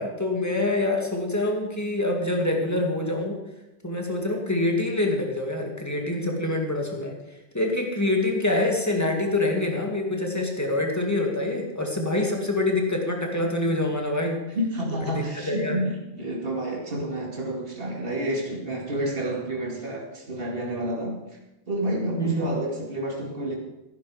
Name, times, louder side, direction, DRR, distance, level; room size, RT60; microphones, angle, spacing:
voice 1, 0.0-3.4 3.8-7.2 7.5-14.4 15.2-15.8 22.2-22.5, left 2 dB, 15° left, 1 dB, 2.1 m, -25 dB
voice 2, 14.5-21.2 21.7-23.6, right 1 dB, 55° right, -1 dB, 2.6 m, -29 dB
14.5 x 11.0 x 4.9 m, 0.98 s
omnidirectional pair, 1.2 m